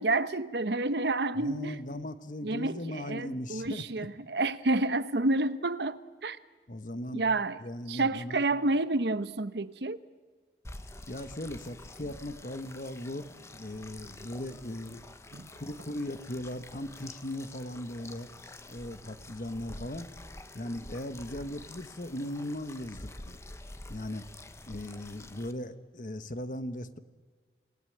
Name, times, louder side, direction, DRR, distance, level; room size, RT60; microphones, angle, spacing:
voice 1, 0.0-1.8 2.4-6.4 7.1-7.6 7.9-10.0 15.3-15.5, right 2 dB, 75° right, 0.9 m, -29 dB
voice 2, 1.4-3.8 6.7-7.2 7.6-8.4 11.1-15.1 15.5-18.3 18.7-20.1 20.5-23.4 23.9-24.2 24.7-27.0, left 1 dB, 45° left, 1.2 m, -38 dB
sound 1, 10.6-25.5, left 2 dB, 15° left, 1.0 m, -48 dB
28.5 x 18.0 x 8.7 m
head